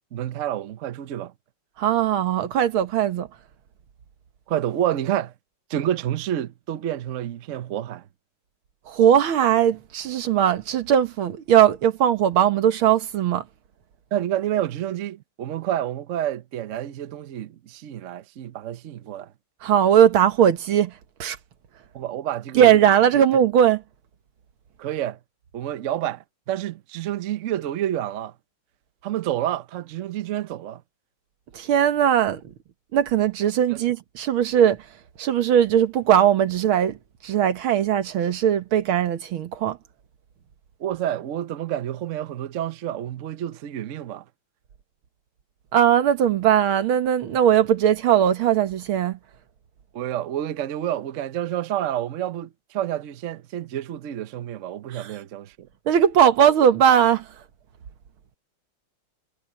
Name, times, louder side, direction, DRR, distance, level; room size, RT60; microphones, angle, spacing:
voice 1, 0.1-1.3 4.5-5.3 5.7-8.1 14.1-19.3 21.9-22.8 23.1-23.2 24.8-25.2 25.5-28.3 29.0-30.8 33.7-33.8 40.8-44.2 49.9-55.7, right 11 dB, 85° right, 0.6 m, -29 dB
voice 2, 1.8-3.3 8.9-13.4 19.6-20.9 21.2-21.4 22.6-23.8 31.5-32.4 32.9-34.8 35.2-37.0 37.2-39.8 45.7-49.2 54.9-55.1 55.9-57.3, right 9 dB, 70° right, 2.0 m, -19 dB
omnidirectional pair, 2.4 m